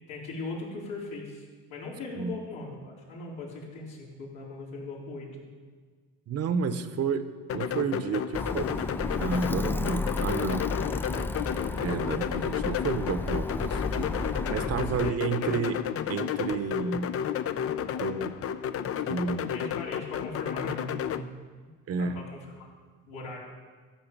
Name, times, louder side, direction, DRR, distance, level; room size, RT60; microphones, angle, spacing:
voice 1, 0.1-1.4 1.7-5.5 14.4-15.5 19.5-21.7 22.0-22.6 23.1-23.4, left 2 dB, 80° left, -4 dB, 4.0 m, -39 dB
voice 2, 6.3-7.3 7.5-8.7 9.2-10.7 11.8-14.1 14.5-15.8 16.1-17.1 18.0-18.4 19.1-19.6 21.9-22.3, right 6 dB, 50° right, 10 dB, 1.0 m, -31 dB
sound 1, 7.5-21.2, left 9 dB, 50° left, 0.7 m, -32 dB
Alarm, 8.3-15.1, left 2 dB, 5° left, 0.3 m, -33 dB
14.5 x 5.6 x 7.4 m, 1.5 s
supercardioid pair, 85°, 31 cm